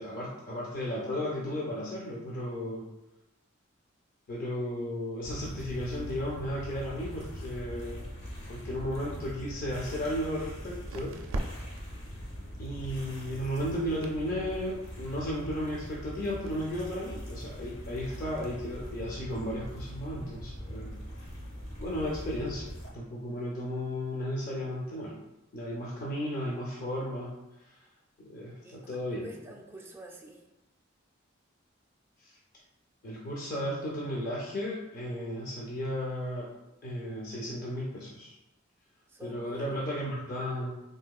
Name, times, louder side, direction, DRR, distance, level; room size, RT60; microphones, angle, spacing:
voice 1, 0.0-2.9 4.3-8.0 8.5-11.2 12.6-21.0 21.8-25.2 25.5-27.4 27.6-27.7 28.2-29.3 32.2-32.3 33.0-36.5 36.8-38.4 39.2-40.7, equal, 45° left, -4 dB, 0.5 m, -34 dB
sound 1, 5.2-22.9, equal, 75° left, 0.9 m, -42 dB
sound 2, 9.5-21.9, right 1 dB, 90° right, 0.4 m, -46 dB
voice 2, 28.6-30.4 39.1-39.9, right 1 dB, 10° right, 0 dB, 0.3 m, -47 dB
3.7 x 2.6 x 2.3 m, 0.98 s
head